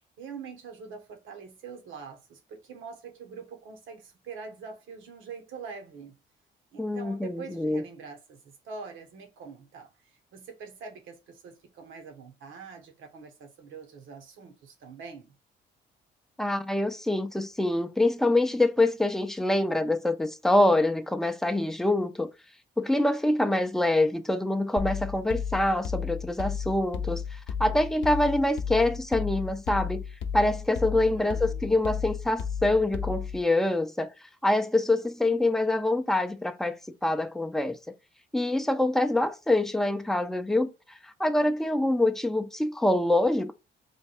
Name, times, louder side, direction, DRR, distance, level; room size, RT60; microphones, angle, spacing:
voice 1, 0.0-6.2 6.7-15.3 31.1-31.8, right 5 dB, 80° right, 1.1 m, -44 dB
voice 2, 6.8-7.8 16.4-22.3 22.8-30.0 30.3-34.1 34.4-37.8 38.3-40.7 41.0-43.5, left 1 dB, ahead, 0.4 m, -25 dB
sound 1, 24.8-33.4, left 7 dB, 65° left, 0.6 m, -33 dB
3.4 x 2.3 x 4.2 m
cardioid pair, 90°, 20 cm